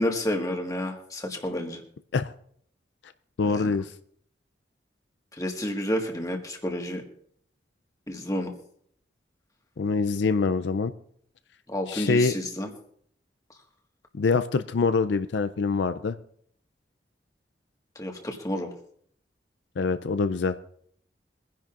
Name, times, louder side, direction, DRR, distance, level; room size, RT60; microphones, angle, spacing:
voice 1, 0.0-1.8 3.5-3.7 5.3-7.0 8.1-8.5 11.7-12.7 17.9-18.7, left 1 dB, 20° left, 2 dB, 1.6 m, -30 dB
voice 2, 3.4-3.9 9.8-10.9 11.9-12.3 14.1-16.2 19.8-20.6, left 4 dB, 75° left, 11 dB, 0.4 m, -24 dB
23.0 x 10.5 x 2.5 m, 0.64 s
head